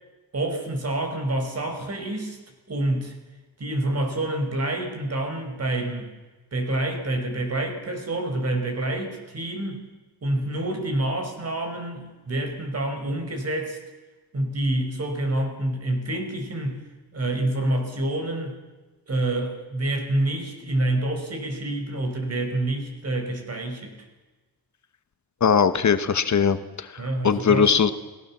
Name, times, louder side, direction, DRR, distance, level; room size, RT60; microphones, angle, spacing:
voice 1, 0.3-2.4 2.7-3.1 3.6-6.1 6.5-9.8 10.2-13.8 14.3-16.8 17.1-18.6 19.1-24.0 27.0-27.7, right 1 dB, 40° right, 5 dB, 5.1 m, -27 dB
voice 2, 25.4-27.9, left 6 dB, 50° left, 10 dB, 1.2 m, -20 dB
29.5 x 18.5 x 7.3 m, 1.2 s
wide cardioid pair, 145°, 37 cm